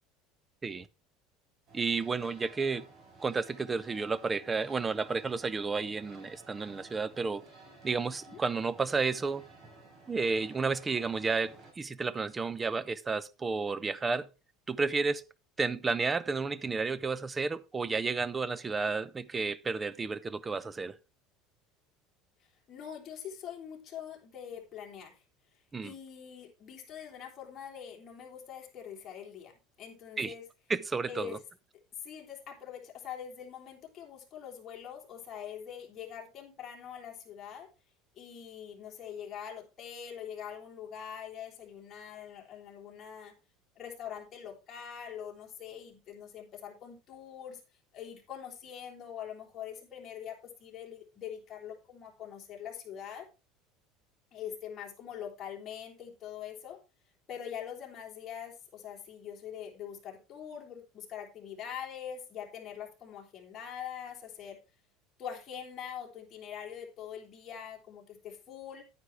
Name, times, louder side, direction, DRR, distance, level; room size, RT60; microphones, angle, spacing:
voice 1, 1.7-2.9 3.2-7.4 7.8-9.5 10.1-14.3 14.7-15.2 15.6-21.0 25.7-25.9 30.2-30.3 30.7-31.4, right 4 dB, 15° right, 0.6 m, -32 dB
sound 1, 1.7-11.7, right 3 dB, 30° right, 4.7 m, -55 dB
voice 2, 22.7-25.2 25.8-30.4 31.1-31.4 32.0-37.7 38.2-43.3 43.8-47.6 47.9-53.3 54.3-56.8 57.3-64.6 65.2-68.8, left 8 dB, 35° left, 3.5 m, -43 dB
10.0 x 9.5 x 3.4 m
cardioid pair, 140°, 0 cm